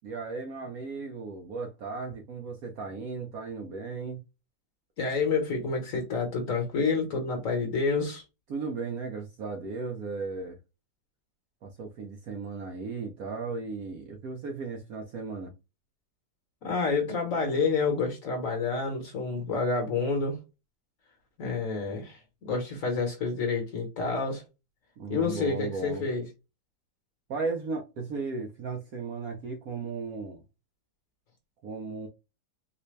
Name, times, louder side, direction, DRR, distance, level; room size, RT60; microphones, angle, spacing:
voice 1, 0.0-4.2 8.5-10.6 11.6-15.5 25.0-26.1 27.3-30.4 31.6-32.1, right 4 dB, 65° right, 0.9 m, -36 dB
voice 2, 5.0-8.2 16.6-20.4 21.4-24.4 25.1-26.2, left 4 dB, 50° left, 1.3 m, -28 dB
4.1 x 2.2 x 3.1 m
omnidirectional pair, 2.0 m